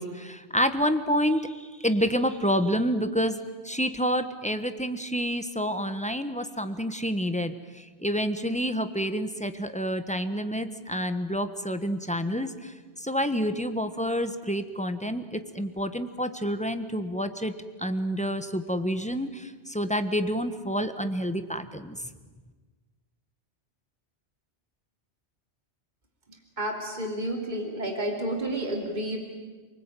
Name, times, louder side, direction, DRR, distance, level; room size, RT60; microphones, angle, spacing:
voice 1, 0.0-1.4 1.8-3.4 3.6-7.5 8.0-12.7 13.0-17.5 17.8-22.0, equal, 5° left, 9 dB, 1.2 m, -28 dB
voice 2, 26.6-29.2, right 1 dB, 40° right, 1 dB, 3.1 m, -30 dB
28.0 x 20.0 x 9.1 m, 1.3 s
omnidirectional pair, 1.2 m